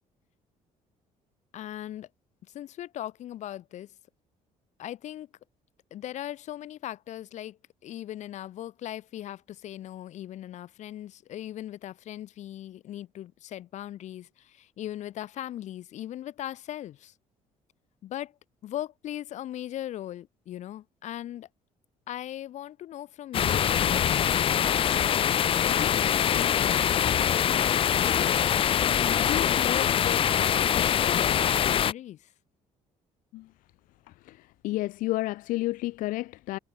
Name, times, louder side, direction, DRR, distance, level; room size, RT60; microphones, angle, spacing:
voice 1, 1.5-2.1 2.5-3.9 4.8-5.3 5.9-17.1 18.0-18.3 18.6-21.5 22.1-23.7 24.9-27.8 28.2-28.5 29.2-32.3, left 12 dB, 60° left, 4.8 m, -38 dB
sound 1, 23.3-31.9, left 9 dB, 40° left, 1.1 m, -24 dB
voice 2, 34.6-36.6, left 18 dB, 85° left, 2.6 m, -30 dB
cardioid pair, 145°, 14 cm